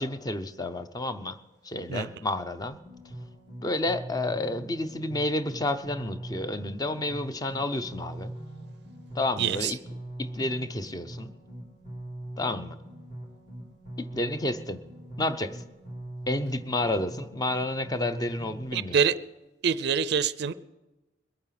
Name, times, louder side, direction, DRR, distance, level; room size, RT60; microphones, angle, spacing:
voice 1, 0.0-1.4 1.6-2.8 3.6-8.3 9.1-9.8 10.2-11.3 12.4-12.8 14.0-14.8 15.2-15.6 16.3-19.0, left 2 dB, 20° left, 0.7 m, -30 dB
sound 1, 2.6-18.6, right 1 dB, 45° left, 3.2 m, -42 dB
voice 2, 9.4-9.7 18.7-19.1 19.6-20.5, right 7 dB, 65° right, 0.4 m, -25 dB
21.5 x 8.8 x 5.8 m
head